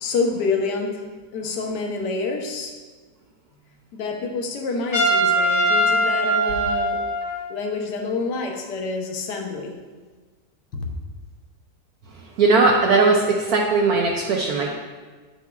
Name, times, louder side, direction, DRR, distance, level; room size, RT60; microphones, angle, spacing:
voice 1, 0.0-1.0 1.3-2.8 3.9-7.0 7.5-9.7 10.7-10.8, left 4 dB, 70° left, 2 dB, 1.4 m, -27 dB
Trumpet, 4.9-7.6, right 1 dB, 55° left, 1.7 m, -21 dB
voice 2, 12.4-14.8, right 3 dB, 65° right, -1 dB, 1.1 m, -18 dB
8.3 x 7.2 x 2.3 m, 1.4 s
omnidirectional pair, 1.9 m